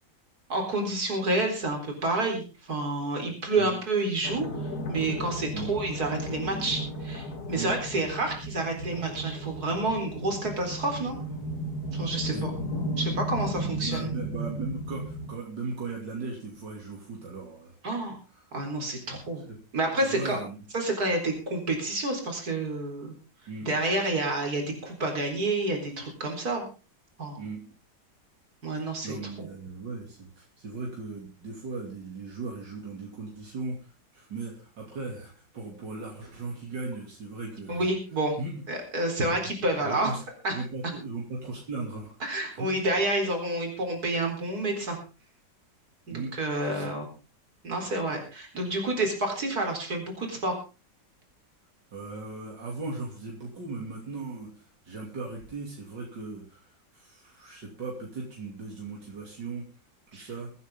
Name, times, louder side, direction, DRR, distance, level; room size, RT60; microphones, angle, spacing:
voice 1, 0.5-4.5 4.9-11.2 11.9-12.5 13.0-14.1 17.8-18.1 18.5-19.4 19.7-20.4 20.7-23.1 23.7-26.7 27.2-27.4 28.6-29.5 37.7-38.4 38.7-40.1 40.4-40.6 42.2-45.0 46.1-47.1 47.6-50.6 60.1-60.3, right 2 dB, 55° right, 3 dB, 4.6 m, -29 dB
sound 1, 4.2-15.3, equal, 60° left, 2.6 m, -35 dB
voice 2, 13.5-17.7 18.3-18.4 19.5-19.6 20.0-20.6 23.5-23.7 27.4-27.6 29.0-37.9 38.4-38.6 39.8-40.2 40.5-42.2 42.5-42.7 46.1-46.3 46.6-46.9 51.9-54.5 54.8-59.7 60.1-60.5, right 3 dB, 75° right, -1 dB, 3.5 m, -37 dB
23.5 x 9.4 x 3.7 m, 0.33 s
omnidirectional pair, 1.9 m